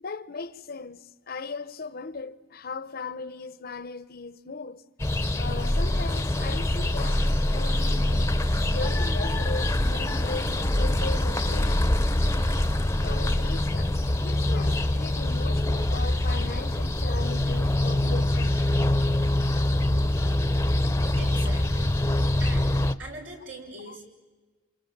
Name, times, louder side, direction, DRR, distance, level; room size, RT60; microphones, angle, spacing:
voice 1, 0.0-4.8 5.4-7.2 7.5-8.3 8.7-11.9 13.0-18.6 23.9-24.0, left 4 dB, 50° left, 0.8 m, -38 dB
sound 1, 5.0-22.9, left 1 dB, 15° left, 0.8 m, -24 dB
voice 2, 21.2-21.9 22.4-22.7 23.0-24.0, right 2 dB, 80° right, 6.4 m, -41 dB
28.5 x 28.0 x 7.3 m
head